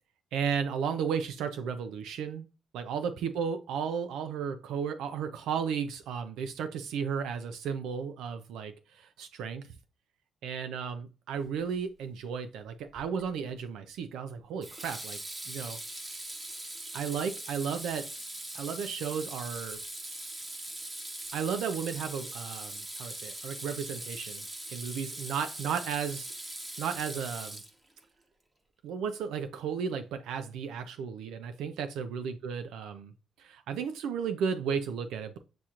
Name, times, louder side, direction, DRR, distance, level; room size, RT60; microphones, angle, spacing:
voice 1, 0.3-2.5 2.7-9.6 10.4-15.2 15.5-15.8 16.9-18.1 18.5-19.8 21.3-24.4 24.7-26.3 26.8-27.6 28.8-33.1 33.4-35.4, right 7 dB, 85° right, 9 dB, 0.4 m, -34 dB
Water tap faucet / Sink (filling or washing), 13.0-13.3 14.6-28.0, right 1 dB, 25° right, 1.0 m, -41 dB
7.6 x 2.9 x 2.4 m, 0.32 s
cardioid pair, 90°, 0 cm